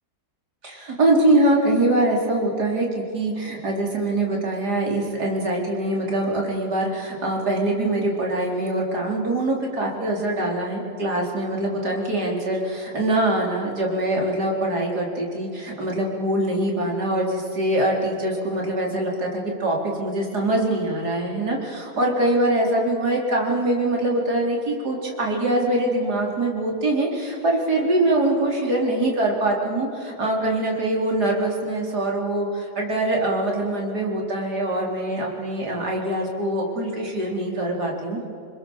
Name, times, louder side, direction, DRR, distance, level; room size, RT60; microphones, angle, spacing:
voice 1, 0.6-38.2, right 1 dB, 75° right, -1 dB, 4.7 m, -23 dB
30.0 x 21.0 x 7.3 m, 2.5 s
omnidirectional pair, 1.8 m